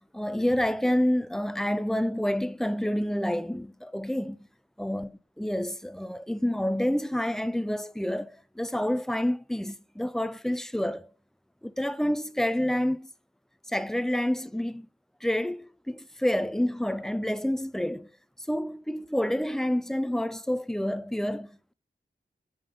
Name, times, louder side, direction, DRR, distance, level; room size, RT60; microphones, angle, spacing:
voice 1, 0.2-4.5 4.8-5.1 5.4-11.1 11.6-13.1 13.7-14.9 15.2-18.1 18.5-21.7, left 1 dB, ahead, 0.3 m, -28 dB
5.5 x 5.4 x 3.4 m
wide cardioid pair, 80°, 19 cm